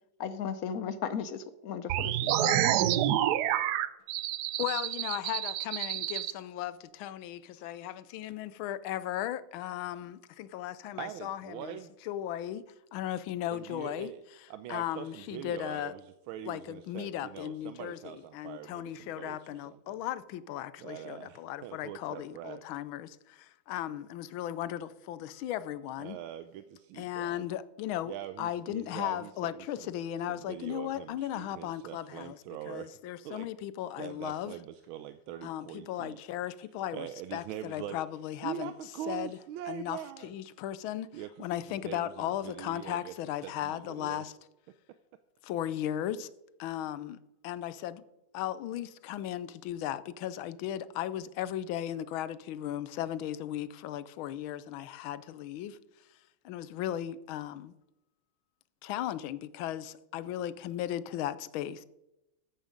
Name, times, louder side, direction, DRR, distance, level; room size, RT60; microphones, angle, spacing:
voice 1, 0.2-2.6, left 7 dB, 65° left, 0.9 m, -36 dB
sound 1, 1.9-6.3, right 12 dB, 70° right, 1.0 m, -28 dB
voice 2, 4.6-11.8 12.0-12.6 12.9-14.1 14.7-15.9 16.5-26.2 26.9-32.4 32.7-34.5 35.4-37.1 37.3-38.7 39.1-39.4 39.7-41.1 41.4-44.3 45.4-46.3 46.6-47.2 47.4-48.0 48.3-55.8 56.4-57.7 58.8-61.8, left 12 dB, 85° left, 1.5 m, -36 dB
voice 3, 11.0-11.9 13.5-14.2 14.5-20.0 20.8-22.6 26.0-27.4 28.0-29.9 30.2-32.9 33.2-33.5 34.0-36.2 36.9-38.0 38.4-40.3 41.1-43.1 43.4-44.2, right 11 dB, 85° right, 1.4 m, -43 dB
13.5 x 9.1 x 5.1 m
omnidirectional pair, 2.2 m